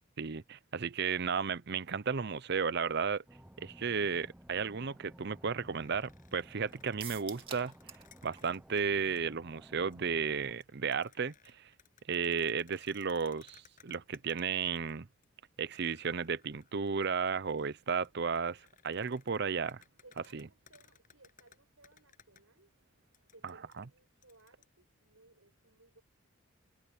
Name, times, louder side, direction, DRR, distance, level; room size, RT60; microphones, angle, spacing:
voice 1, 0.2-3.2 3.6-7.7 8.2-11.7 12.1-15.1 15.6-19.8 20.3-20.5 23.4-23.8, right 5 dB, 55° right, 0.6 m, -34 dB
sound 1, 3.3-10.6, equal, 5° right, 0.9 m, -56 dB
sound 2, 5.6-8.8 9.2-9.3 9.8-10.1 10.4-14.9 15.2-15.3 15.7-22.4 23.1-24.7, left 8 dB, 40° left, 7.8 m, -64 dB
sound 3, 7.0-8.1 8.4-8.5 8.8-8.9, right 7 dB, 25° right, 2.4 m, -46 dB
voice 2, 20.0-22.7 23.3-26.0, right 2 dB, 80° right, 7.4 m, -62 dB
head